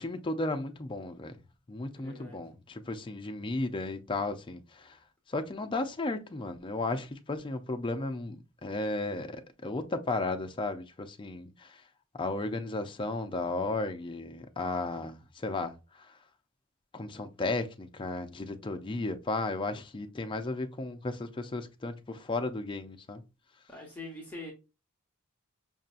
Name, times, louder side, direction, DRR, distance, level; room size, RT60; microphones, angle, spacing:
voice 1, 0.0-1.4 1.7-4.9 5.3-11.7 12.2-15.7 16.9-23.2, left 2 dB, 25° left, 0.4 m, -34 dB
voice 2, 1.9-2.4 23.7-24.5, left 2 dB, 10° left, 0.9 m, -43 dB
5.3 x 2.7 x 2.4 m
head